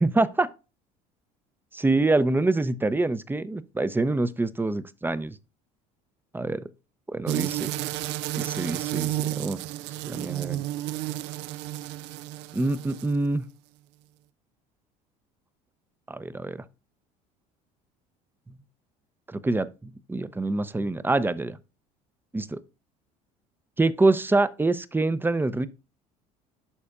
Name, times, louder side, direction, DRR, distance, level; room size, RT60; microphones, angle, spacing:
voice 1, 0.0-0.5 1.7-5.4 6.3-6.6 7.1-7.7 8.4-9.6 10.1-10.6 12.5-13.4 16.1-16.6 19.3-21.6 22.3-22.6 23.8-25.7, right 2 dB, 10° right, 0.6 m, -25 dB
sound 1, 7.3-13.3, right 14 dB, 65° right, 0.4 m, -31 dB
11.5 x 4.2 x 2.4 m
supercardioid pair, 80°, 19 cm